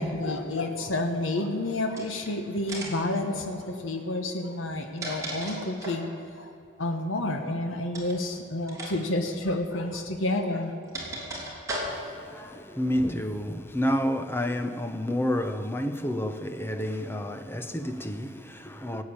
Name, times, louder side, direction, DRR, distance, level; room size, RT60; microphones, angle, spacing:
voice 1, 0.0-6.1 6.4-6.5 6.8-10.7, left 1 dB, 80° left, 1.3 m, -30 dB
sound 1, 1.9-2.3 2.7-3.1 4.6-6.1 7.9-8.2 8.7-8.9 9.2-9.3 10.3-12.2, right 1 dB, 15° right, 3.5 m, -36 dB
voice 2, 11.9-19.0, equal, 10° left, 0.8 m, -30 dB
18.0 x 8.5 x 8.8 m
head